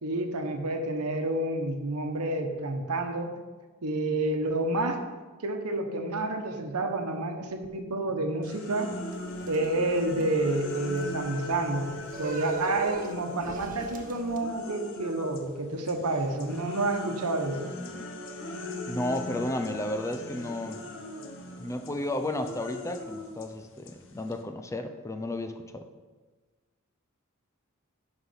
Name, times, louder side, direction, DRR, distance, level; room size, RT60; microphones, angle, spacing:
voice 1, 0.0-3.3 3.8-5.0 5.4-8.9 9.5-17.7, right 2 dB, 80° right, 5 dB, 1.1 m, -29 dB
sound 1, 8.4-15.5 15.9-24.4, left 1 dB, 60° left, 1.0 m, -40 dB
sound 2, 9.1-14.4, right 2 dB, 40° right, 0.8 m, -39 dB
voice 2, 18.9-20.8 21.6-25.9, left 1 dB, 15° left, 7 dB, 0.5 m, -33 dB
10.5 x 4.0 x 5.8 m, 1.3 s
head